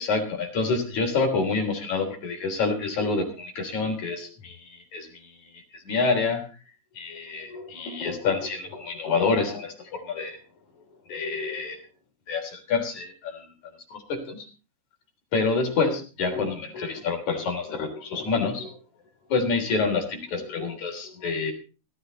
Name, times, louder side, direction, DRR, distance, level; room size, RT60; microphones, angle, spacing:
voice 1, 0.0-6.4 6.9-10.4 11.1-11.8 12.3-13.5 13.9-14.5 15.3-18.8 19.3-21.5, left 4 dB, 75° left, 3 dB, 4.9 m, -27 dB
17.5 x 14.5 x 4.0 m, 0.35 s
omnidirectional pair, 3.4 m